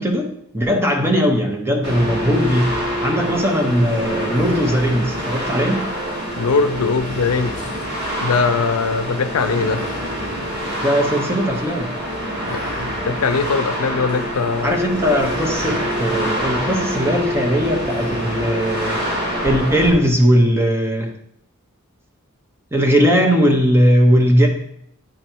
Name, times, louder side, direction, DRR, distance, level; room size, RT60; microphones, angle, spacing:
voice 1, 0.0-2.7 3.0-5.9 10.8-11.9 14.6-19.0 19.4-21.1 22.7-24.5, equal, 10° right, 2 dB, 0.9 m, -18 dB
sound 1, 1.8-19.9, equal, 50° right, 2.1 m, -25 dB
voice 2, 6.4-7.7 8.2-9.9 12.5-14.8, left 4 dB, 80° left, 10 dB, 0.5 m, -21 dB
8.9 x 3.2 x 4.5 m, 0.70 s
head